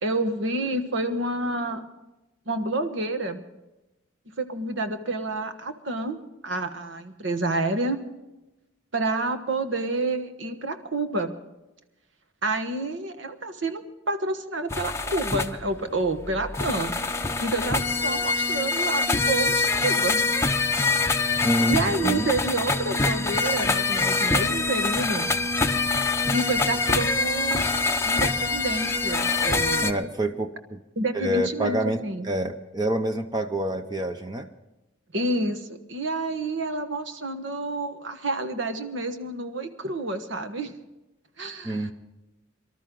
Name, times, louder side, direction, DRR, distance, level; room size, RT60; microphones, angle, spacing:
voice 1, 0.0-1.9 2.5-3.4 4.4-6.2 6.4-8.0 8.9-11.3 12.4-16.9 17.4-20.4 21.7-25.3 26.3-27.6 28.0-29.9 31.0-32.3 35.1-40.7 41.4-41.9, right 2 dB, 65° right, 8 dB, 1.3 m, -29 dB
sound 1, 14.7-29.9, left 3 dB, 15° left, 0.7 m, -25 dB
voice 2, 21.4-22.3 29.8-30.8 31.1-34.5 41.6-41.9, right 1 dB, 20° right, 6 dB, 0.7 m, -27 dB
24.0 x 13.0 x 3.8 m, 0.99 s
head